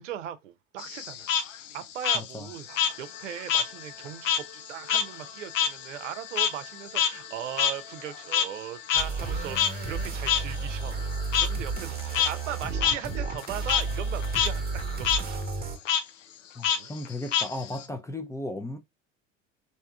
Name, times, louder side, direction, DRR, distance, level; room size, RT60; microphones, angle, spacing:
voice 1, 0.0-15.7 16.7-16.9 17.9-18.0, right 10 dB, 70° right, 0.7 m, -39 dB
Frog, 0.8-3.7 4.0-8.6 8.9-9.0 9.6-9.7 10.3-10.4 11.3-11.5 12.0-12.3 12.8-13.0 13.3-13.8 14.2-14.5 14.8-15.2 15.9-16.0 16.6-17.9, left 8 dB, 80° left, 0.6 m, -26 dB
voice 2, 2.1-2.5 16.5-18.8, left 1 dB, 10° left, 0.5 m, -36 dB
sound 1, 2.7-15.1, left 9 dB, 55° left, 1.2 m, -48 dB
sound 2, 9.0-15.8, right 4 dB, 25° right, 1.1 m, -32 dB
3.5 x 2.7 x 3.4 m
figure-of-eight pair, 70°, 38 cm